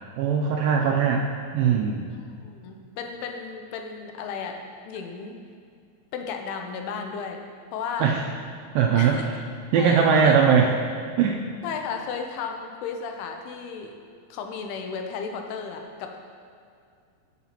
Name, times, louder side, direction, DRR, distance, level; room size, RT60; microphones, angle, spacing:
voice 1, 0.2-1.3 1.5-2.1 8.0-8.2 8.8-9.3 9.7-10.7 11.2-11.4, right 6 dB, 85° right, 0 dB, 2.0 m, -20 dB
voice 2, 2.1-5.4 6.1-7.4 7.7-8.1 9.0-9.3 9.8-10.4 11.6-13.9 14.3-16.2, left 6 dB, 85° left, 4 dB, 2.8 m, -34 dB
13.0 x 7.0 x 2.9 m, 2.3 s
omnidirectional pair, 4.5 m